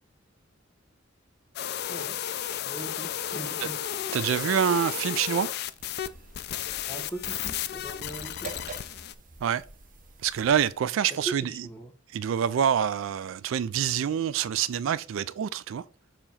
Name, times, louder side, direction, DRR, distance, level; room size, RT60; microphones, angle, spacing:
sound 1, 1.6-6.1 6.3-9.1, left 10 dB, 55° left, 0.4 m, -33 dB
voice 1, 2.6-3.8 6.8-8.5 11.1-11.9, right 2 dB, 10° left, 1.3 m, -40 dB
voice 2, 4.1-5.5 9.4-9.6 10.2-11.4 12.1-15.8, right 8 dB, 70° right, 0.3 m, -26 dB
sound 2, 5.8-10.8, right 4 dB, 40° right, 0.8 m, -47 dB
6.8 x 3.0 x 5.5 m
head